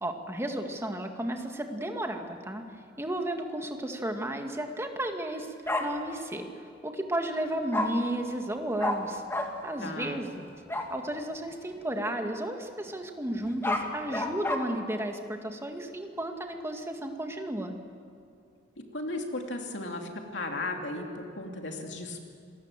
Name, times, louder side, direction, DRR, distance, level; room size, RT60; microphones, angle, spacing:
voice 1, 0.0-2.6 3.0-5.5 5.8-6.5 6.8-9.2 9.6-10.4 10.9-17.8, right 1 dB, 15° right, 4 dB, 1.9 m, -33 dB
Bark, 5.7-5.8 7.7-7.9 8.8-9.0 9.3-9.5 10.7-10.9 13.4-14.6, left 2 dB, 15° left, 2.0 m, -29 dB
voice 2, 9.8-10.2 18.8-22.2, left 2 dB, 75° left, 2 dB, 2.9 m, -35 dB
27.0 x 19.5 x 7.6 m, 2.3 s
head